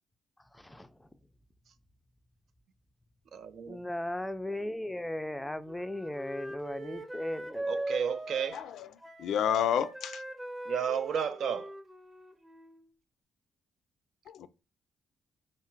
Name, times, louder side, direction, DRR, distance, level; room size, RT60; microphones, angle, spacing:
voice 1, 0.5-1.1 3.7-7.7, left 1 dB, 5° left, 0.4 m, -37 dB
voice 2, 3.3-3.8 7.6-8.6 10.7-11.7, right 7 dB, 65° right, 0.4 m, -32 dB
Wind instrument woodwind instrument, 5.2-8.8 9.0-12.9, right 1 dB, 15° right, 0.8 m, -41 dB
voice 3, 8.5-8.9 9.2-10.2 14.3-14.5, left 9 dB, 75° left, 0.3 m, -30 dB
3.7 x 2.4 x 4.3 m
cardioid pair, 90°, 0 cm